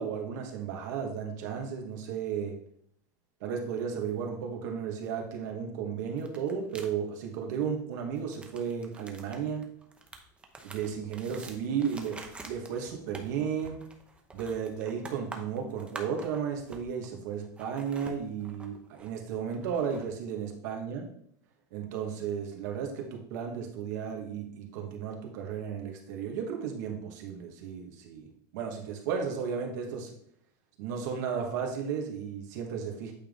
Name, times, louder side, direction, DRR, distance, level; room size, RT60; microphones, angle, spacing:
voice 1, 0.0-2.5 3.4-9.7 10.6-13.8 14.3-21.1 21.7-28.3 28.5-30.1 30.8-33.1, right 7 dB, 75° right, 2 dB, 1.5 m, -34 dB
sound 1, 6.2-6.9 8.2-17.2 17.4-20.1, right 3 dB, 10° right, 0.7 m, -47 dB
8.6 x 3.8 x 3.5 m, 0.66 s
supercardioid pair, 145°, 10 cm